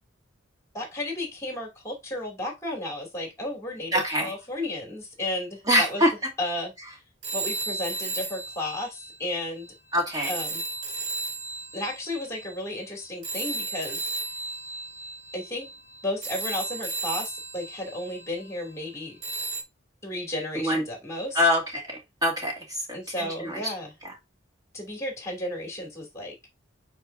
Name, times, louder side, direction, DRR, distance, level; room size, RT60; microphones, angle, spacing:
voice 1, 0.7-6.0 6.4-6.7 7.3-9.7 10.3-10.6 11.7-14.0 15.3-15.7 16.0-19.2 20.0-21.5 22.9-23.9 24.7-26.3, left 1 dB, 15° left, 2.8 m, -33 dB
voice 2, 3.9-4.3 5.7-6.1 9.9-10.3 20.6-20.8 21.4-22.5 22.9-23.6, equal, 20° right, 2.3 m, -24 dB
sound 1, 7.2-9.7 10.2-18.7 19.2-19.6, right 3 dB, 60° right, 1.5 m, -34 dB
8.6 x 4.5 x 2.7 m
head